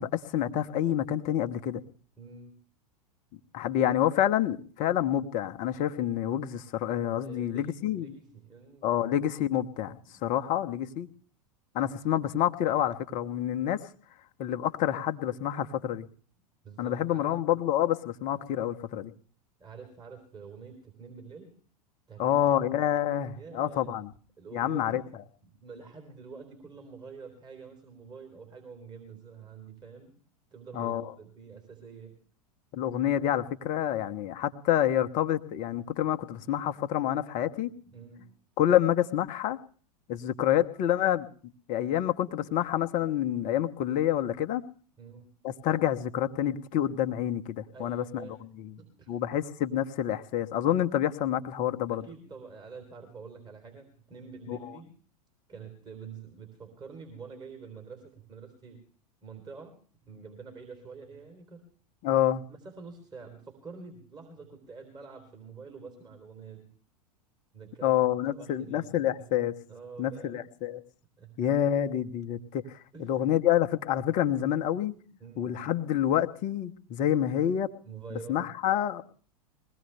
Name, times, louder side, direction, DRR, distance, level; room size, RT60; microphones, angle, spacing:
voice 1, 0.0-1.8 3.5-8.1 8.8-11.1 11.7-13.8 14.4-16.1 16.8-19.1 22.2-24.1 24.5-25.0 30.7-31.0 32.7-37.7 38.6-39.6 40.1-41.3 41.7-44.6 45.4-48.3 49.1-52.0 54.5-54.6 62.0-62.4 67.8-69.5 70.0-70.8 71.4-72.8 73.1-74.9 75.4-77.7 78.1-79.0, left 11 dB, 40° left, 8 dB, 1.1 m, -28 dB
voice 2, 2.2-2.5 7.2-8.9 10.1-10.3 16.6-17.3 19.6-21.5 22.1-22.6 23.3-24.0 24.4-25.1 25.4-30.1 30.5-32.2 37.6-38.3 45.0-45.3 47.7-48.4 48.8-49.2 51.9-54.9 55.5-58.8 59.2-59.8 60.1-61.6 62.1-62.2 62.5-66.7 67.5-68.0 68.3-69.4 69.7-70.5 71.2-71.4 72.9-73.3 75.2-75.7 77.8-78.5, right 5 dB, 20° right, 5 dB, 3.8 m, -47 dB
21.5 x 17.0 x 3.4 m, 0.43 s
figure-of-eight pair, 90°, 20 cm